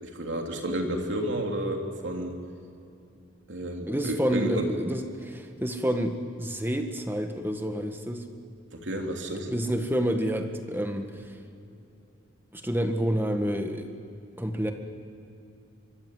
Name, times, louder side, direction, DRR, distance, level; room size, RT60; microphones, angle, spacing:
voice 1, 0.0-2.4 3.5-4.7 8.7-9.5, right 1 dB, 75° right, 2 dB, 3.1 m, -31 dB
voice 2, 3.9-8.3 9.5-11.4 12.5-13.9 14.4-14.7, equal, 10° right, 5 dB, 1.7 m, -29 dB
24.5 x 23.0 x 7.8 m, 2.7 s
head